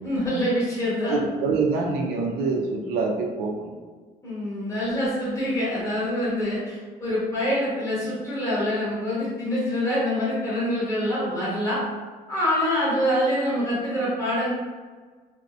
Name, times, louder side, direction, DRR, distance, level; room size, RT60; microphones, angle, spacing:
voice 1, 0.0-1.2 4.2-11.8 12.3-14.5, equal, 20° left, -9 dB, 1.1 m, -25 dB
voice 2, 1.0-3.7, right 4 dB, 80° right, 1 dB, 0.4 m, -25 dB
2.6 x 2.0 x 2.4 m, 1.4 s
cardioid pair, 150°, 16 cm